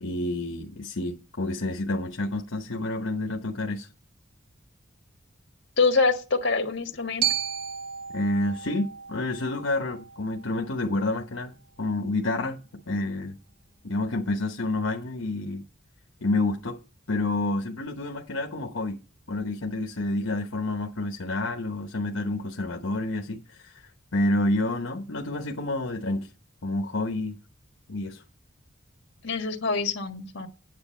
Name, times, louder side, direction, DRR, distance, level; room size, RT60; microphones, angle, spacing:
voice 1, 0.0-3.9 8.1-11.5 11.8-13.4 13.8-15.6 16.2-16.8 17.1-19.0 19.3-23.8 24.1-26.3 26.6-27.4 27.9-28.2, left 2 dB, 75° left, 1.0 m, -29 dB
voice 2, 5.8-7.3 29.2-30.5, left 4 dB, 60° left, 1.7 m, -25 dB
Glockenspiel, 7.2-11.3, right 9 dB, 45° right, 0.9 m, -34 dB
9.6 x 7.5 x 4.4 m
head